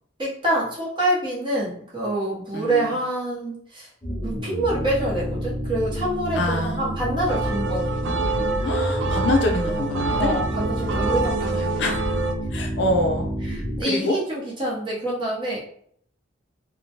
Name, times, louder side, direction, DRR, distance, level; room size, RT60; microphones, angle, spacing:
voice 1, 0.2-3.9 4.2-7.9 10.1-11.8 13.5-15.6, right 1 dB, 25° right, -6 dB, 0.8 m, -26 dB
voice 2, 2.5-2.9 6.3-7.0 8.6-10.4 11.8-11.9 12.5-13.3 13.8-14.2, left 1 dB, 60° left, 2 dB, 0.5 m, -25 dB
sound 1, 4.0-13.8, equal, 10° left, 0.6 m, -29 dB
sound 2, 7.3-12.3, right 3 dB, 65° right, 0.4 m, -26 dB
2.8 x 2.2 x 2.8 m, 0.64 s
head